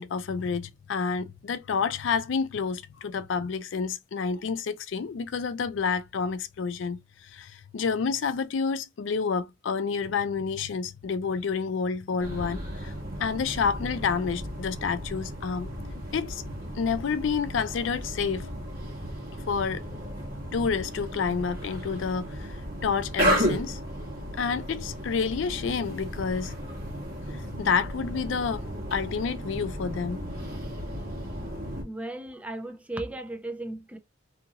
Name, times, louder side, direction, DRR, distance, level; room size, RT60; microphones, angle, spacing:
voice 1, 0.0-12.9 13.2-15.7 16.1-16.4 16.8-18.6 19.5-19.8 20.5-22.6 22.8-23.8 24.4-26.5 27.3-28.6 28.9-30.2, left 5 dB, 75° left, 0.4 m, -29 dB
sound 1, 12.2-31.8, equal, 50° right, 1.3 m, -34 dB
voice 2, 31.8-34.0, right 1 dB, 5° right, 0.4 m, -36 dB
2.7 x 2.5 x 2.8 m
head